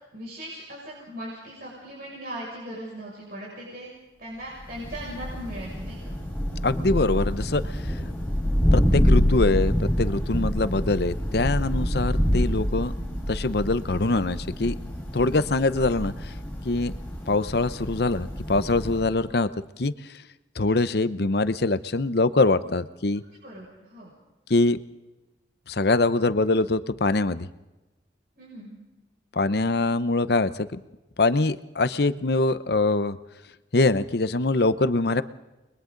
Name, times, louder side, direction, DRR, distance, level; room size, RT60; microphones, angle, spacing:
voice 1, 0.1-3.9 4.2-6.2 12.1-12.3 23.4-24.1 28.4-28.8, equal, 55° right, -4 dB, 6.5 m, -39 dB
Thunder, 4.6-19.2, equal, 10° left, 5.3 m, -27 dB
voice 2, 6.6-7.8 8.7-12.9 13.3-14.8 15.1-16.3 16.6-17.0 17.3-19.5 19.8-19.9 20.6-23.2 24.5-24.8 25.7-27.5 29.3-30.8 31.2-33.2 33.7-35.2, left 2 dB, 60° left, 13 dB, 0.8 m, -23 dB
30.0 x 22.0 x 3.9 m, 1.1 s
head